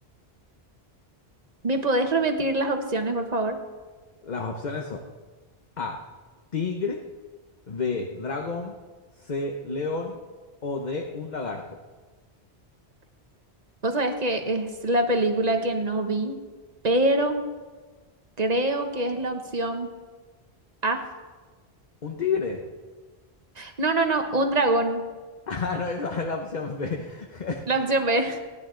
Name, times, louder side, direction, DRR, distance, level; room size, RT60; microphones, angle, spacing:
voice 1, 1.6-3.6 13.8-16.4 16.8-17.4 18.4-19.9 20.8-21.0 23.6-25.0 27.7-28.4, right 2 dB, 40° right, 5 dB, 1.2 m, -24 dB
voice 2, 4.2-5.0 5.8-6.0 6.5-7.0 7.7-8.8 9.2-10.2 10.6-11.8 22.0-22.6 25.5-27.6, left 4 dB, 45° left, 2 dB, 1.0 m, -30 dB
18.0 x 10.5 x 3.8 m, 1.3 s
omnidirectional pair, 1.1 m